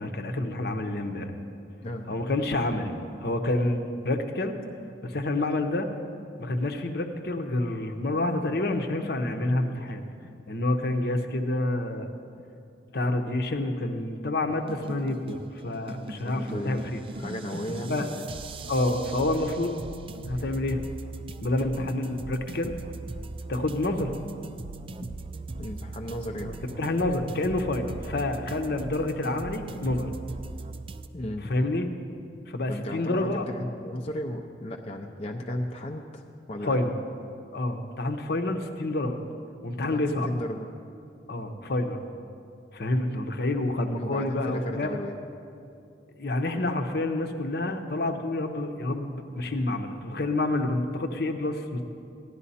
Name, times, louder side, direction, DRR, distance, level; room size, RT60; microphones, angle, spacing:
voice 1, 0.0-1.3 2.1-4.5 5.0-5.9 6.4-10.0 10.5-12.1 12.9-17.0 17.9-18.1 18.7-19.8 20.2-20.8 21.4-22.7 23.5-24.2 26.8-30.1 30.7-30.8 31.4-31.9 32.5-33.5 36.6-37.0 37.5-39.2 39.6-40.3 41.3-42.0 42.7-45.0 46.2-51.8, left 2 dB, 65° left, 6 dB, 0.8 m, -28 dB
voice 2, 1.8-2.2 16.2-16.9 17.2-18.3 25.6-26.6 31.1-31.5 32.7-36.2 36.5-36.8 39.7-40.7 44.0-45.1, left 1 dB, 35° left, 2 dB, 0.5 m, -34 dB
sound 1, 14.5-31.1, right 3 dB, 30° right, 0.4 m, -39 dB
15.0 x 11.0 x 4.2 m, 2.5 s
head